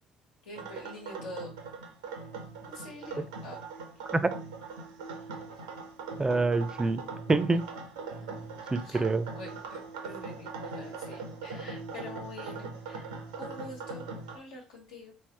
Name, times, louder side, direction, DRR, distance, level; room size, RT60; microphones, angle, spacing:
voice 1, 0.4-1.5 2.6-3.6 5.5-5.6 8.4-8.5 8.8-15.1, left 1 dB, 85° left, 0 dB, 1.3 m, -46 dB
sound 1, 0.6-14.4, right 4 dB, 90° right, 0.7 m, -41 dB
voice 2, 6.2-7.7 8.7-9.3, right 3 dB, 20° right, 12 dB, 0.5 m, -26 dB
3.3 x 3.2 x 3.2 m, 0.32 s
hypercardioid pair, 60°, 3 cm